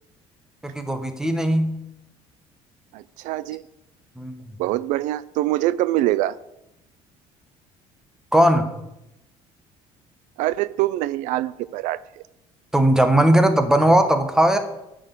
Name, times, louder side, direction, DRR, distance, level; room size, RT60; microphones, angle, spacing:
voice 1, 0.6-1.7 4.2-4.5 8.3-8.7 12.7-14.6, right 1 dB, 5° right, 7 dB, 1.2 m, -18 dB
voice 2, 2.9-3.6 4.6-6.4 10.4-12.0, right 15 dB, 75° right, 18 dB, 0.4 m, -24 dB
11.0 x 6.3 x 8.3 m, 0.89 s
cardioid pair, 135°, 13 cm